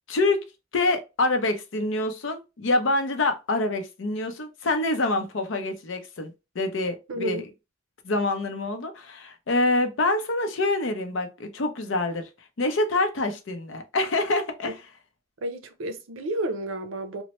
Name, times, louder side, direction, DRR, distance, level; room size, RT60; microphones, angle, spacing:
voice 1, 0.1-0.4 0.7-7.5 8.0-12.3 12.6-14.8, left 2 dB, 70° left, 0.6 m, -26 dB
voice 2, 7.1-7.4 15.4-17.2, right 1 dB, 80° right, 0.6 m, -31 dB
3.0 x 2.1 x 2.9 m
head